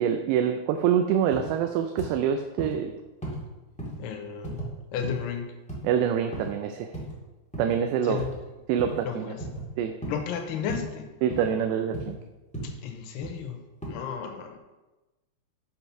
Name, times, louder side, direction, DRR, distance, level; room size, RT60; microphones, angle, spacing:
voice 1, 0.0-3.0 5.8-6.9 7.6-8.2 8.7-9.3 9.8-9.9 11.2-12.2, right 8 dB, 90° right, 6 dB, 2.7 m, -25 dB
sound 1, 1.3-1.5 2.0-2.2 2.6-2.8 3.2-3.4 3.8-4.0 4.4-4.7 5.0-5.3 5.7-5.9 6.3-6.5 6.9-7.1 7.5-7.8 8.2-8.4 8.8-9.0 9.4-9.7 10.0-10.2 10.7-10.9 11.3-11.5 11.9-12.2 12.5-12.8 13.2-13.5 13.8-13.9, right 1 dB, 10° left, 0.4 m, -36 dB
voice 2, 4.0-5.6 8.0-8.4 9.0-9.5 10.1-11.1 12.6-14.6, left 7 dB, 80° left, 5 dB, 2.9 m, -34 dB
7.5 x 5.7 x 5.8 m, 1.1 s
omnidirectional pair, 4.8 m